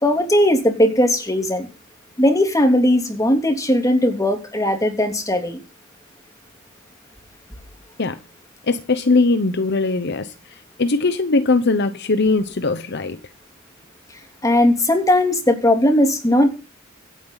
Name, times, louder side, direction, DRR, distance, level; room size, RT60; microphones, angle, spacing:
voice 1, 0.0-1.7 2.2-5.6 14.4-16.5, left 1 dB, 15° left, 3.2 m, -18 dB
voice 2, 8.7-13.2, left 3 dB, 55° left, 0.9 m, -20 dB
24.0 x 9.4 x 4.0 m
head